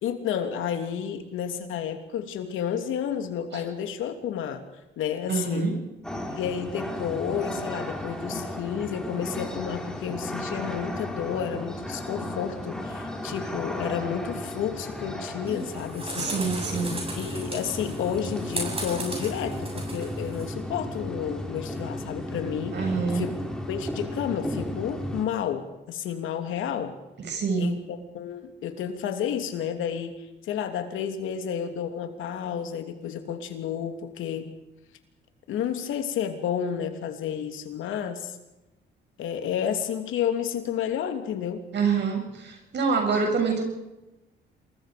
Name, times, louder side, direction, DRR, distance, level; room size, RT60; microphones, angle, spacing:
voice 1, 0.0-4.6 5.0-5.7 6.3-16.3 17.2-23.3 23.7-27.0 27.6-34.5 35.5-38.4 39.2-41.6, left 8 dB, 85° left, 6 dB, 2.9 m, -31 dB
voice 2, 5.3-5.9 16.2-17.0 22.7-23.3 27.2-27.8 41.7-43.6, right 5 dB, 60° right, 3 dB, 7.4 m, -26 dB
sound 1, 6.0-25.3, left 1 dB, 5° left, 4.0 m, -34 dB
sound 2, 15.5-20.4, right 2 dB, 30° right, 7.8 m, -36 dB
28.0 x 21.5 x 5.2 m, 0.99 s
cardioid pair, 90°, 20 cm